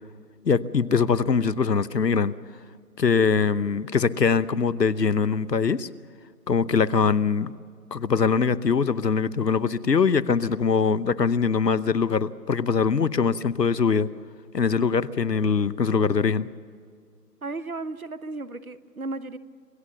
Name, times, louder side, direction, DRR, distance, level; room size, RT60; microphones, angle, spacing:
voice 1, 0.5-2.3 3.0-5.9 6.5-7.5 7.9-14.1 14.5-16.5, left 5 dB, 80° left, 18 dB, 1.0 m, -22 dB
voice 2, 17.4-19.4, right 3 dB, 60° right, 15 dB, 1.1 m, -34 dB
28.0 x 15.5 x 7.0 m, 2.1 s
figure-of-eight pair, 180°, 49 cm